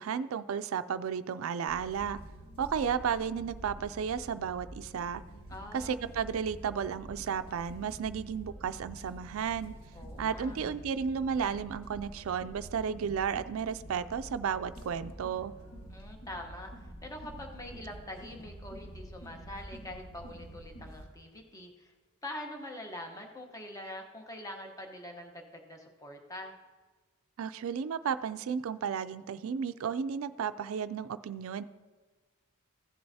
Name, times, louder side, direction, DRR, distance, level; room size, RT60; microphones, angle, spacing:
voice 1, 0.0-2.2 2.6-5.2 5.7-9.7 10.2-15.5 27.4-31.6, right 7 dB, 75° right, 11 dB, 0.4 m, -33 dB
sound 1, 1.7-21.0, right 1 dB, 80° left, 2.4 m, -47 dB
voice 2, 5.5-6.0 9.9-10.6 15.9-16.7 17.0-21.9 22.2-26.6, left 1 dB, 15° left, 3 dB, 1.0 m, -44 dB
15.5 x 7.7 x 2.8 m, 1.4 s
head